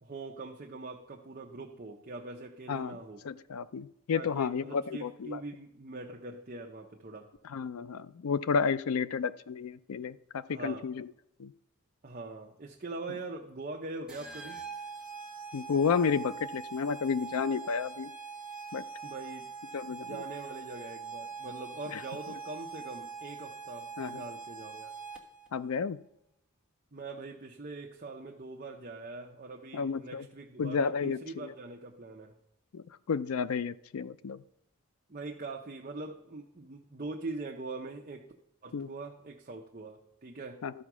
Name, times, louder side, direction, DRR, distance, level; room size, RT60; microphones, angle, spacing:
voice 1, 0.0-3.2 4.1-7.3 10.5-10.9 12.0-14.6 19.0-19.5 19.9-24.9 26.9-32.4 35.1-38.2 38.6-40.6, right 3 dB, 40° right, 0 dB, 0.8 m, -42 dB
voice 2, 2.7-3.0 3.2-5.4 7.5-11.1 11.4-11.5 15.5-18.1 18.7-18.8 19.7-20.2 21.9-22.0 24.0-24.2 25.5-26.0 29.7-30.2 30.6-31.5 32.7-34.4 38.7-38.9 40.6-40.7, left 6 dB, 85° left, 15 dB, 0.4 m, -31 dB
sound 1, 14.1-25.5, right 5 dB, 5° right, 1.2 m, -43 dB
13.0 x 4.5 x 6.1 m, 0.82 s
head